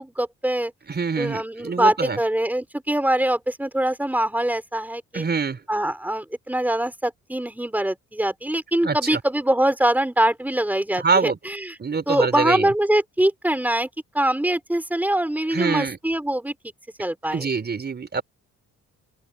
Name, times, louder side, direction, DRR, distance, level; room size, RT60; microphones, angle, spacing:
voice 1, 0.0-0.7 1.2-5.2 5.7-11.8 12.1-13.9 14.1-16.5 17.0-17.5, right 1 dB, 5° right, 5.0 m, -23 dB
voice 2, 0.9-2.2 5.1-5.6 8.8-9.2 10.9-11.4 11.8-12.7 15.5-16.0 17.3-18.2, right 5 dB, 35° right, 4.7 m, -25 dB
open air
cardioid pair, 90°, 30 cm